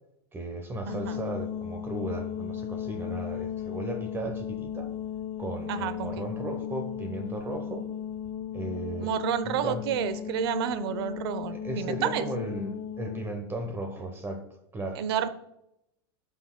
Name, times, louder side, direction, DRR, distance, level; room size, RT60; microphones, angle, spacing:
voice 1, 0.3-4.9 5.4-7.9 8.5-9.2 9.4-9.8 11.5-14.5 14.7-15.0, right 1 dB, 15° right, 6 dB, 0.9 m, -35 dB
sound 1, 0.9-13.2, left 9 dB, 40° left, 0.7 m, -36 dB
voice 2, 0.9-1.2 5.7-6.3 9.0-12.3 15.0-15.3, right 9 dB, 75° right, 13 dB, 0.7 m, -30 dB
12.5 x 5.9 x 2.2 m, 0.82 s
supercardioid pair, 130°, 13 cm